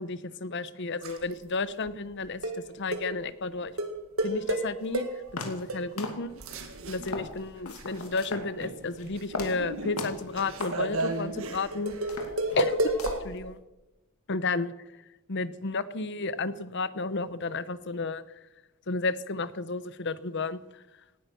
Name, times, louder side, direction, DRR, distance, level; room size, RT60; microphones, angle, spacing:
voice 1, 0.0-2.4 2.7-3.7 4.2-5.0 5.3-6.3 6.9-12.0 12.5-12.8 13.2-13.6 14.3-14.7 15.3-18.2 18.9-20.6, left 3 dB, 55° left, 15 dB, 0.9 m, -32 dB
sound 1, 1.0-1.3 1.9-2.0 2.4-2.6 2.9-3.1 3.8-5.3 5.7-5.8 6.3-8.2 8.5-13.2, right 1 dB, 70° right, 2.0 m, -32 dB
sound 2, 4.8-4.9 5.4-5.7 6.0-6.6 7.0-7.4 7.6-8.5 8.8-9.0 9.3-9.6 10.0-10.3 10.6-10.8 11.3-11.4 12.0-12.7 13.0-13.4, left 3 dB, 80° left, 2.6 m, -38 dB
18.5 x 10.0 x 6.9 m, 1.0 s
head